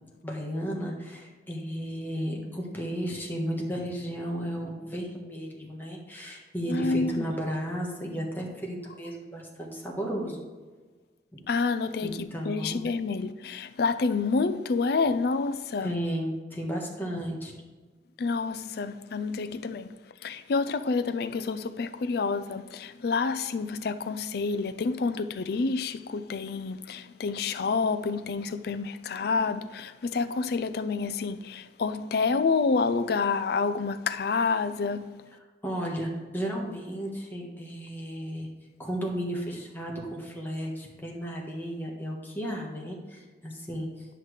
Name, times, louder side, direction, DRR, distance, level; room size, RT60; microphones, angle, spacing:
voice 1, 0.2-10.4 11.3-11.5 12.0-12.8 15.8-17.5 35.6-38.5 38.8-44.1, equal, 10° left, 1.4 m, -34 dB
voice 2, 6.7-7.3 11.5-15.9 18.2-35.3, left 4 dB, 60° left, 0.4 m, -28 dB
9.9 x 5.8 x 3.3 m
head